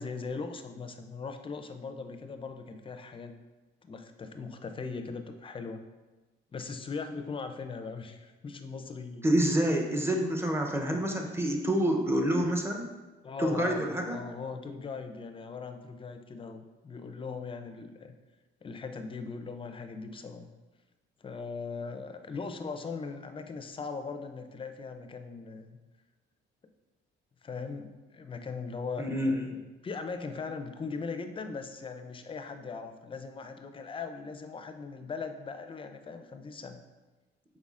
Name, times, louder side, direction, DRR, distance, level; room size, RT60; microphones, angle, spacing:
voice 1, 0.0-3.3 3.8-5.8 6.5-9.3 13.2-18.1 18.6-20.5 21.2-25.8 27.4-29.1 29.5-36.8, left 4 dB, 25° left, 7 dB, 0.4 m, -39 dB
voice 2, 9.2-12.9 13.4-14.2 29.0-29.3, right 1 dB, 10° right, 2 dB, 0.7 m, -27 dB
5.3 x 3.8 x 2.4 m, 1.2 s
cardioid pair, 90°, 20 cm